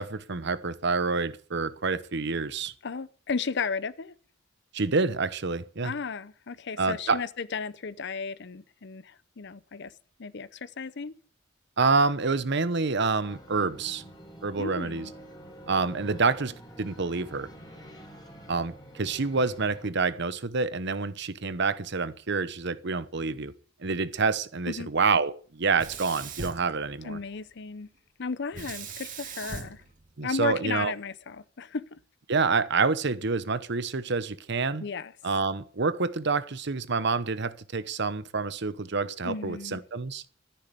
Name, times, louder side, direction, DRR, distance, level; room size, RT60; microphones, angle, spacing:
voice 1, 0.0-2.7 4.7-5.9 6.8-7.2 11.8-14.0 14.4-15.1 15.7-17.5 18.5-23.5 23.8-27.2 30.2-30.9 32.3-34.8 35.2-40.2, right 4 dB, 60° right, 0.9 m, -27 dB
voice 2, 2.8-4.1 5.8-9.9 10.2-11.1 14.6-15.1 24.7-24.9 27.0-27.9 28.2-29.8 30.2-31.8 34.8-35.1 39.2-39.8, left 5 dB, 60° left, 0.7 m, -34 dB
sound 1, 13.2-19.9, right 1 dB, 20° left, 3.7 m, -47 dB
Sink (filling or washing), 25.7-27.4 28.5-30.8, right 4 dB, 40° right, 2.1 m, -40 dB
13.5 x 10.5 x 6.8 m
head